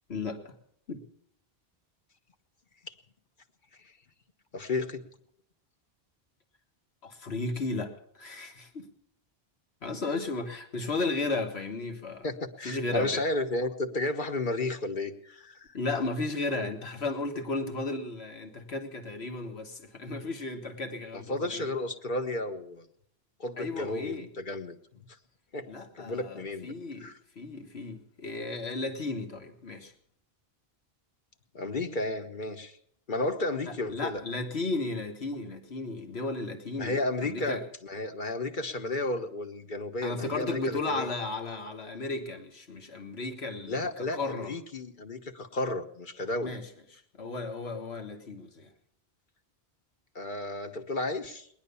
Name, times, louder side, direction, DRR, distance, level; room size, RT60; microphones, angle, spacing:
voice 1, 0.1-0.6 0.9-1.1 7.0-8.9 9.8-12.3 12.6-13.2 15.7-21.7 23.6-24.3 25.7-29.9 33.7-37.6 40.0-44.5 46.4-46.6 47.2-48.7, left 3 dB, 80° left, 5 dB, 1.9 m, -34 dB
voice 2, 4.5-5.0 12.2-15.7 21.1-22.9 23.4-25.0 25.5-25.7 25.9-26.7 27.0-27.1 31.5-32.8 33.1-34.2 36.7-41.1 43.6-46.6 50.1-51.5, left 2 dB, 50° left, 6 dB, 1.3 m, -33 dB
19.5 x 10.5 x 6.9 m, 0.68 s
omnidirectional pair, 1.1 m